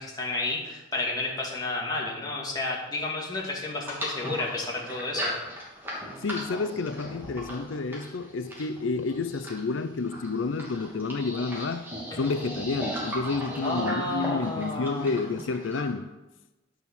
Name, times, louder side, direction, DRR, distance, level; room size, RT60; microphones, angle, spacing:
voice 1, 0.0-5.3 12.1-12.3 13.6-15.1, left 2 dB, 20° left, 2.4 m, -31 dB
sound 1, 3.8-15.9, equal, 10° right, 2.8 m, -37 dB
voice 2, 6.2-16.1, left 4 dB, 85° left, 0.6 m, -30 dB
10.5 x 6.3 x 7.1 m
head